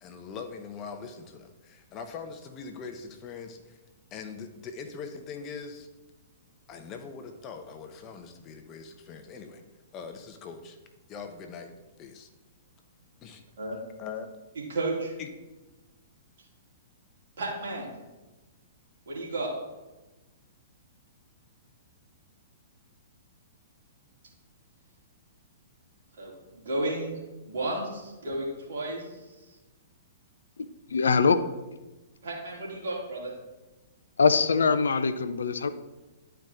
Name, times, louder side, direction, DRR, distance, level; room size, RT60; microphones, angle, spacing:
voice 1, 0.0-3.8 4.1-5.9 6.7-9.6 9.9-10.8 11.1-11.7 12.0-12.3 13.2-13.4 14.0-14.3 15.2-15.3, left 5 dB, 30° left, 6 dB, 0.8 m, -41 dB
voice 2, 14.6-15.1 17.4-17.9 19.1-19.5 26.1-27.2 27.4-29.3 32.2-33.3, right 2 dB, 65° right, -3 dB, 2.3 m, -33 dB
voice 3, 30.9-31.4 34.2-35.7, left 5 dB, 75° left, 12 dB, 0.4 m, -22 dB
11.0 x 4.5 x 2.5 m, 1.1 s
figure-of-eight pair, 115°, 0 cm